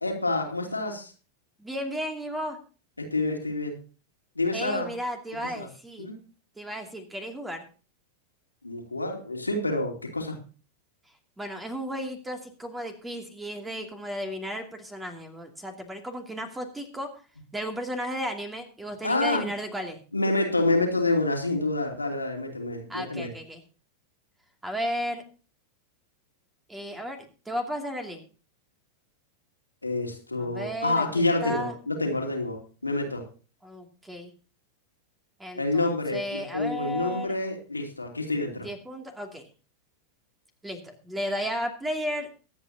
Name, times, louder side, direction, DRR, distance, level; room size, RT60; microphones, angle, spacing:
voice 1, 0.0-1.1 3.0-3.8 4.4-4.9 5.5-5.7 6.0-6.2 8.6-10.4 19.0-19.5 20.1-23.3 29.8-33.2 35.6-38.7, left 2 dB, 80° left, 1 dB, 2.7 m, -28 dB
voice 2, 1.6-2.6 4.5-6.1 6.6-7.6 11.4-17.1 17.5-20.0 22.9-23.6 24.6-25.2 26.7-27.2 27.5-28.2 30.4-31.8 33.6-34.3 35.4-37.3 38.6-39.4 40.6-42.3, equal, 10° right, 4 dB, 2.7 m, -34 dB
23.0 x 8.8 x 2.9 m, 0.38 s
figure-of-eight pair, 90°, 0 cm